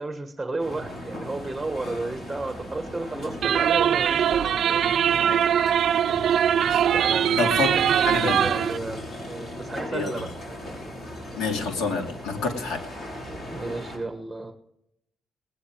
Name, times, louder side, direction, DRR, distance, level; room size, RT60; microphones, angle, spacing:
voice 1, 0.0-4.9 5.5-5.8 6.9-10.3 13.5-14.5, right 2 dB, 10° right, 6 dB, 1.4 m, -33 dB
sound 1, 0.6-14.0, equal, 40° left, 6.0 m, -37 dB
sound 2, 3.4-8.8, right 9 dB, 65° right, 0.4 m, -22 dB
voice 2, 7.4-7.7 8.1-8.5 9.9-10.2 11.3-12.9, left 4 dB, 85° left, 3 dB, 2.5 m, -28 dB
19.5 x 9.6 x 4.6 m, 0.82 s
cardioid pair, 90°, 0 cm